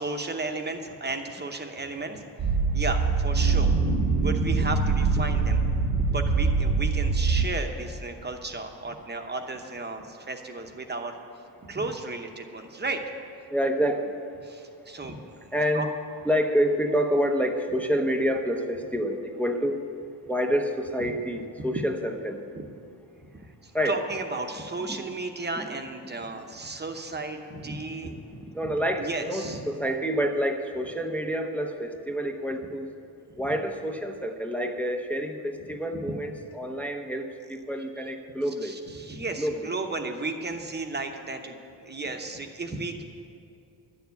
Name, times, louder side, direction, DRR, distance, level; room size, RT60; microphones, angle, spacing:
voice 1, 0.0-2.2 2.7-11.1 11.6-13.0 14.4-15.2 15.7-15.9 23.3-28.2 28.6-28.7 29.0-29.6 38.6-43.0, right 3 dB, 25° right, 5 dB, 0.9 m, -34 dB
sound 1, 2.4-7.4, right 4 dB, 75° right, 1.6 m, -23 dB
voice 2, 13.5-14.2 15.5-15.9 16.2-19.8 20.3-22.4 23.7-24.0 24.9-25.1 25.6-25.7 26.3-26.5 27.7-27.8 28.5-32.9 33.3-38.8 39.4-39.7, equal, 5° left, 4 dB, 0.6 m, -28 dB
11.5 x 7.0 x 9.4 m, 2.6 s
wide cardioid pair, 150°, 42 cm